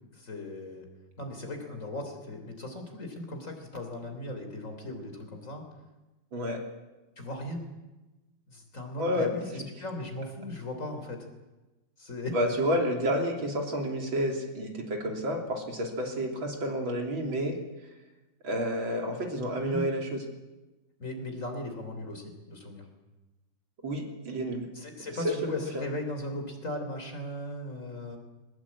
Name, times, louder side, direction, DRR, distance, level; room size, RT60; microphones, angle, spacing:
voice 1, 0.1-0.9 1.2-5.6 7.2-7.7 8.5-11.3 12.0-12.3 19.5-19.9 21.0-22.8 24.7-28.2, left 1 dB, 40° left, 5 dB, 4.0 m, -37 dB
voice 2, 9.0-9.3 12.3-17.6 18.4-20.2 23.8-24.7 25.2-25.9, equal, 90° right, 2 dB, 4.0 m, -30 dB
22.0 x 20.0 x 8.5 m, 1.1 s
omnidirectional pair, 2.1 m